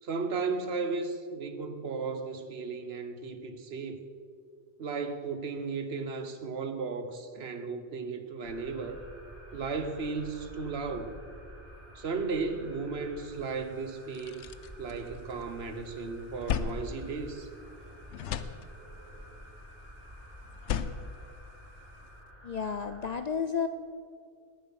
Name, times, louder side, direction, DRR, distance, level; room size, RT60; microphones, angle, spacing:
voice 1, 0.0-4.0 4.8-9.0 9.5-11.2 11.9-14.5 14.8-17.5, right 4 dB, 65° right, 9 dB, 1.2 m, -35 dB
sound 1, 8.4-23.1, equal, 25° right, 4.6 m, -50 dB
sound 2, 13.5-13.6 13.9-15.6 16.0-17.8 18.1-19.2 20.4-22.1, left 8 dB, 90° left, 0.9 m, -36 dB
voice 2, 22.4-23.7, left 6 dB, 50° left, 9 dB, 0.5 m, -31 dB
19.5 x 7.2 x 5.8 m, 2.2 s
omnidirectional pair, 1.1 m